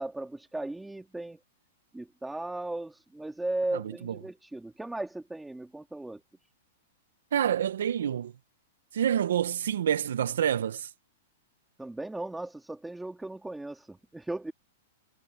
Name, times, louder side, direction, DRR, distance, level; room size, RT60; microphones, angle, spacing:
voice 1, 0.0-1.4 1.9-6.2 11.8-14.5, right 2 dB, 5° right, 1.8 m, -36 dB
voice 2, 3.7-4.1 7.3-8.3 8.9-10.9, right 9 dB, 80° right, 0.6 m, -28 dB
supercardioid pair, 170°, 0 cm